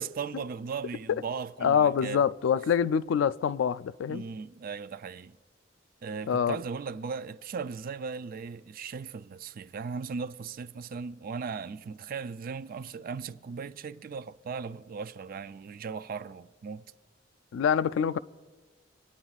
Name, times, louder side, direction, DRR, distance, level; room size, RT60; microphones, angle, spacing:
voice 1, 0.0-2.3 4.1-5.4 6.0-16.8, right 5 dB, 50° right, 0.4 m, -37 dB
voice 2, 1.6-4.2 6.3-6.6 17.5-18.2, left 7 dB, 80° left, 0.3 m, -25 dB
26.5 x 9.8 x 2.4 m
head